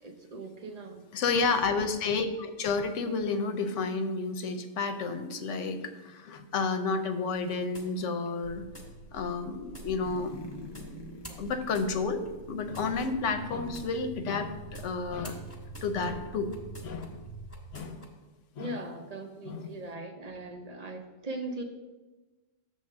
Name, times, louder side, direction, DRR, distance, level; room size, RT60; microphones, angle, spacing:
voice 1, 0.0-1.0 18.6-21.6, right 2 dB, 45° right, 3 dB, 0.5 m, -39 dB
voice 2, 1.1-8.6 9.1-10.3 11.4-12.2 12.5-15.5 15.8-16.5 16.8-17.2 17.7-18.1 18.6-18.8 19.4-19.7, left 4 dB, 65° left, 8 dB, 1.0 m, -31 dB
sound 1, 7.3-8.3 8.7-8.9 9.7-9.9 10.7-10.9 11.2-12.3 12.7-12.9 13.7-13.9 14.7-14.9 15.2-17.1 17.5-18.1, left 1 dB, 10° left, 1.2 m, -49 dB
sound 2, 8.4-17.8, right 3 dB, 80° right, 1.3 m, -46 dB
sound 3, 10.0-13.4 13.7-13.8, left 1 dB, 35° left, 0.4 m, -46 dB
7.2 x 3.5 x 6.3 m, 1.2 s
omnidirectional pair, 1.4 m